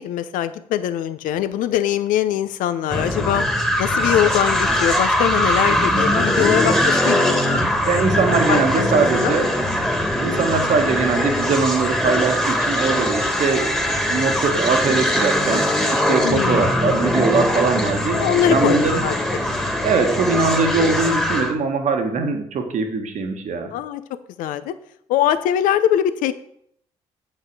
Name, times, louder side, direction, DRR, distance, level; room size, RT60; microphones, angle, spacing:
voice 1, 0.0-3.4 3.8-7.4 8.5-8.8 9.1-9.3 16.2-16.7 18.2-19.2 23.7-24.0 24.4-24.7 25.1-26.3, left 11 dB, 75° left, 13 dB, 0.6 m, -22 dB
sound 1, 2.9-21.5, left 1 dB, 5° left, 1.6 m, -21 dB
voice 2, 7.9-9.5 10.2-18.2 18.5-19.0 19.8-23.7, right 4 dB, 60° right, 5 dB, 1.4 m, -21 dB
8.0 x 5.6 x 4.7 m, 0.70 s
hypercardioid pair, 50°, 14 cm